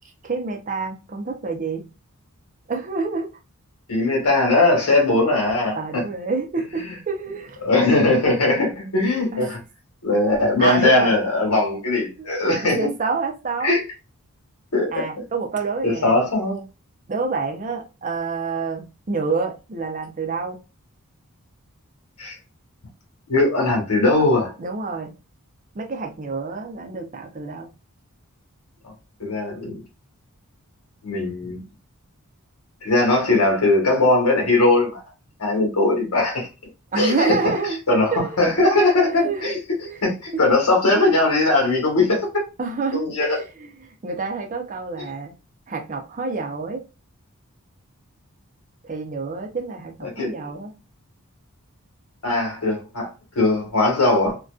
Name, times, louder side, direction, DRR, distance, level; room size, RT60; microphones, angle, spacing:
voice 1, 0.2-1.9 2.7-3.3 5.8-7.6 9.3-9.6 10.6-11.2 12.2-13.8 14.9-16.2 17.1-20.6 24.6-25.1 25.7-27.7 36.9-38.4 39.0-39.5 39.8-40.0 40.3-40.4 42.6-45.3 45.7-46.8 48.8-50.7, right 4 dB, 35° right, 0.5 m, -27 dB
voice 2, 3.9-6.0 6.8-7.0 7.6-9.6 10.0-12.8 13.6-13.8 14.7-15.0 15.8-16.6 22.2-22.4 23.3-24.5 29.2-29.8 31.0-31.6 32.8-35.0 35.4-36.5 36.9-37.4 37.9-39.6 40.0-42.2 42.9-43.4 50.2-50.3 52.2-53.1 53.3-54.4, left 2 dB, 75° left, 1.1 m, -19 dB
2.5 x 2.2 x 2.3 m
head